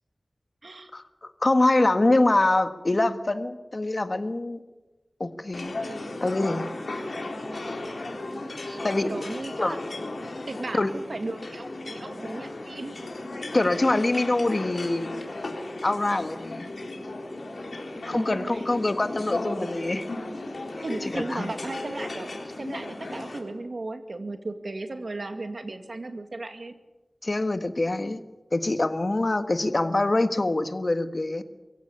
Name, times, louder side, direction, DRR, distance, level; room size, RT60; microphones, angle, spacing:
voice 1, 0.9-4.6 5.2-5.8 6.2-6.7 8.8-9.3 9.6-9.8 10.7-10.9 13.5-15.1 15.8-16.7 18.1-20.1 21.1-21.5 27.2-28.2 28.5-31.4, left 2 dB, 50° left, 9 dB, 1.6 m, -24 dB
sound 1, 5.5-23.4, left 2 dB, 85° left, 3.8 m, -36 dB
voice 2, 8.6-9.8 10.5-13.0 18.1-18.6 20.8-26.7, right 2 dB, 70° right, 7 dB, 2.2 m, -36 dB
23.5 x 15.5 x 8.6 m, 1.1 s
wide cardioid pair, 55°, 0 cm